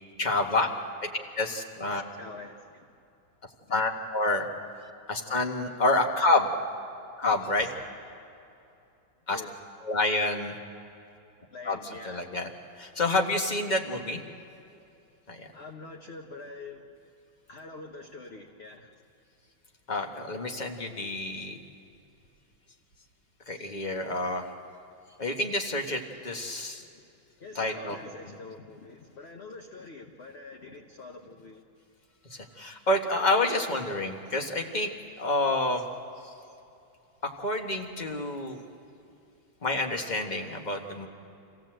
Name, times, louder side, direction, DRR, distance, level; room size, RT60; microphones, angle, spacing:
voice 1, 0.2-0.7 1.0-2.0 3.7-4.4 5.1-6.5 7.2-7.7 9.3-9.4 9.8-10.6 11.6-12.5 12.8-14.2 15.3-15.5 19.9-21.6 23.5-24.5 25.2-26.8 27.5-28.0 28.2-28.4 32.3-34.9 35.2-35.8 37.4-38.6 39.6-41.1, left 2 dB, 25° left, 3 dB, 1.4 m, -28 dB
voice 2, 1.8-2.9 9.3-9.5 11.5-12.3 15.5-16.9 17.5-19.0 27.4-31.6, left 3 dB, 40° left, 3 dB, 1.1 m, -45 dB
27.5 x 16.0 x 7.8 m, 2.7 s
omnidirectional pair, 2.1 m